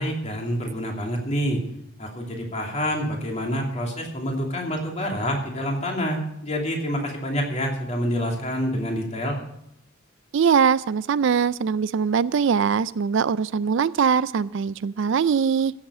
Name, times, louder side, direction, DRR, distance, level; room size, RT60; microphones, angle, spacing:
voice 1, 0.0-1.6 2.0-9.4, equal, 30° left, 0 dB, 2.8 m, -27 dB
voice 2, 10.3-15.7, right 6 dB, 60° right, 17 dB, 0.3 m, -22 dB
15.5 x 7.4 x 6.2 m, 0.77 s
head